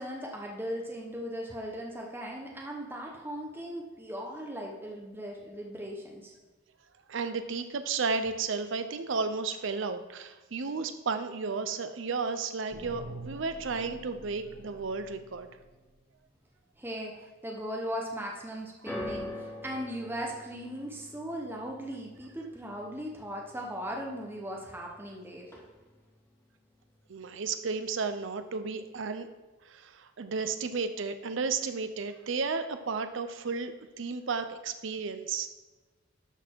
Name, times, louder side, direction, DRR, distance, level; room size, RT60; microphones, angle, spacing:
voice 1, 0.0-6.3 16.8-25.5, equal, 10° right, -1 dB, 0.9 m, -38 dB
voice 2, 7.1-15.5 19.5-19.6 27.1-29.3 29.6-35.5, right 4 dB, 65° right, 9 dB, 0.5 m, -33 dB
sound 1, 12.7-16.1, right 2 dB, 45° right, 2.1 m, -47 dB
sound 2, 18.9-25.1 25.4-26.1 26.8-26.9, left 1 dB, 10° left, 1.9 m, -44 dB
12.0 x 4.2 x 4.6 m, 1.2 s
head